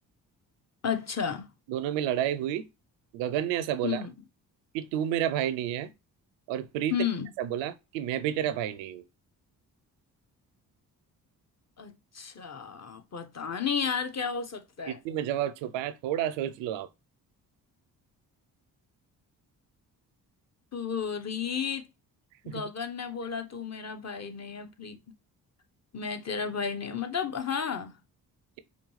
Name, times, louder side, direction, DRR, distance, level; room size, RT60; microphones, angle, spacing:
voice 1, 0.8-1.5 3.8-4.1 6.9-7.3 11.8-14.9 20.7-21.8 22.4-25.0 25.9-27.9, left 7 dB, 35° left, 1.0 m, -32 dB
voice 2, 1.7-2.7 3.1-4.0 4.7-5.9 6.5-7.0 7.4-9.1 14.9-16.9 22.5-22.7, right 11 dB, 85° right, 0.6 m, -30 dB
5.0 x 2.3 x 3.1 m
hypercardioid pair, 45°, 44 cm